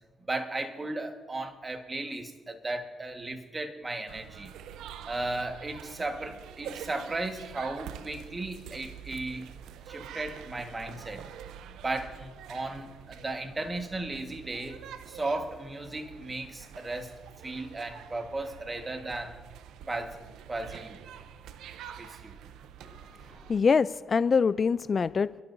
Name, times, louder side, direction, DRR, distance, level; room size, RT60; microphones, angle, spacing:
voice 1, 0.2-4.5 5.1-9.5 9.9-11.2 11.8-17.1 17.4-19.4 19.9-20.2 20.5-21.0 22.0-22.4, right 2 dB, 25° right, 5 dB, 1.5 m, -35 dB
sound 1, 4.1-23.6, right 9 dB, 85° right, 0.6 m, -46 dB
voice 2, 23.5-25.4, left 5 dB, 40° left, 17 dB, 0.3 m, -24 dB
28.5 x 12.0 x 2.7 m, 1.4 s
cardioid pair, 90°, 0 cm